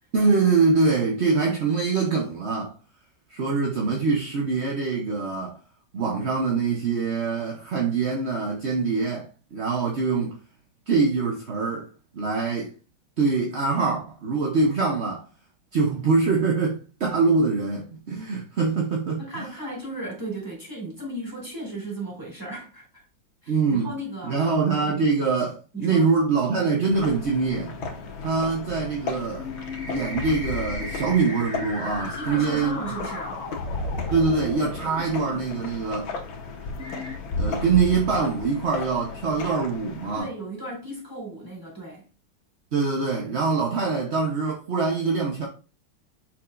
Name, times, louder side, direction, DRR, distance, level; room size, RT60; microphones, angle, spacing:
voice 1, 0.1-2.8 3.3-5.6 5.9-10.3 10.9-11.9 12.1-12.7 13.2-15.2 15.7-19.5 23.5-23.9 24.2-27.8 28.2-29.5 29.9-32.9 34.1-36.1 37.4-40.3 42.7-45.5, right 4 dB, 45° right, 0.9 m, -24 dB
voice 2, 19.2-23.0 23.4-24.4 24.8-25.0 25.7-26.1 32.1-33.4 40.1-42.0, right 1 dB, 10° right, 3.3 m, -36 dB
sound 1, 26.9-40.2, left 3 dB, 85° left, 1.9 m, -34 dB
sound 2, 29.4-35.4 36.2-36.3 36.8-37.2, left 3 dB, 40° left, 2.1 m, -36 dB
6.7 x 6.1 x 2.5 m
omnidirectional pair, 2.1 m